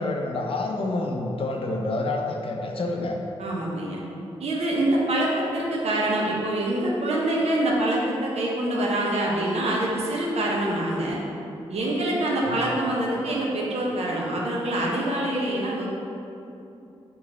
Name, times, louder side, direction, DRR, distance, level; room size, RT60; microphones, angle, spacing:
voice 1, 0.0-3.2 12.4-12.6, left 2 dB, 55° left, 1 dB, 0.5 m, -28 dB
voice 2, 3.4-4.0 4.4-11.2 11.7-15.9, right 1 dB, 70° right, -3 dB, 0.8 m, -25 dB
3.8 x 3.0 x 3.8 m, 2.8 s
cardioid pair, 60°, 11 cm